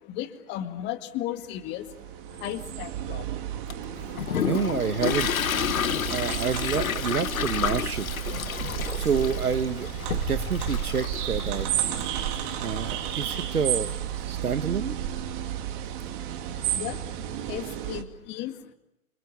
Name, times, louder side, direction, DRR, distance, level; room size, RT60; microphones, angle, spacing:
voice 1, 0.1-1.9 2.4-3.2 16.8-17.0 17.5-18.5, left 13 dB, 25° left, 9 dB, 2.2 m, -34 dB
sound 1, 1.6-18.0, right 11 dB, 35° right, 2.8 m, -32 dB
Toilet flush, 3.7-13.9, left 8 dB, 70° left, 1.5 m, -31 dB
voice 2, 4.4-5.5 6.1-8.1 8.9-9.9 10.3-11.7 12.6-13.9 14.3-15.0, right 6 dB, 80° right, 12 dB, 1.9 m, -28 dB
28.0 x 27.0 x 7.2 m, 0.85 s
hypercardioid pair, 135°, 43 cm